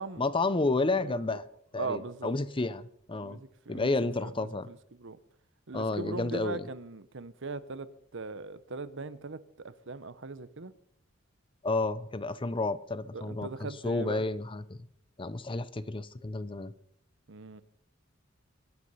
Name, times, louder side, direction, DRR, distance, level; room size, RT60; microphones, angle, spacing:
voice 1, 0.2-1.4 1.7-3.4 3.7-4.7 5.7-6.6 11.6-14.9 15.2-16.7, left 3 dB, 25° left, 16 dB, 0.6 m, -31 dB
voice 2, 0.9-1.4 1.8-2.3 3.2-3.9 4.2-5.2 5.7-7.9 8.1-10.7 13.1-14.2 17.3-17.6, right 3 dB, 65° right, 15 dB, 0.9 m, -40 dB
22.5 x 9.6 x 5.6 m, 0.75 s
head